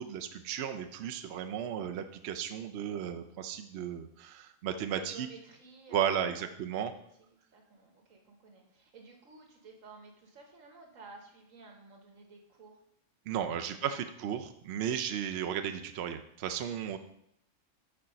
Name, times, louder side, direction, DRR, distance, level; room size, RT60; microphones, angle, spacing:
voice 1, 0.0-5.3 5.9-6.9 13.3-17.0, right 9 dB, 65° right, 7 dB, 0.7 m, -34 dB
voice 2, 4.9-7.0 7.5-12.8 13.3-14.0, right 4 dB, 80° right, 2 dB, 1.6 m, -54 dB
6.7 x 4.3 x 5.2 m, 0.73 s
omnidirectional pair, 1.3 m